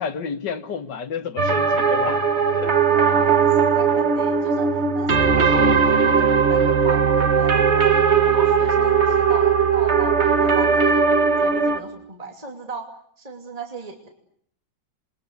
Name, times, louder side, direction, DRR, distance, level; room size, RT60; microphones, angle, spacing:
voice 1, 0.0-2.2 2.5-2.8, left 6 dB, 70° left, 2.0 m, -30 dB
sound 1, 1.4-11.8, right 6 dB, 40° right, 1.6 m, -18 dB
voice 2, 2.9-7.7 8.2-12.9 13.2-14.1, right 3 dB, 20° right, 2.8 m, -36 dB
28.0 x 23.0 x 8.2 m
omnidirectional pair, 1.9 m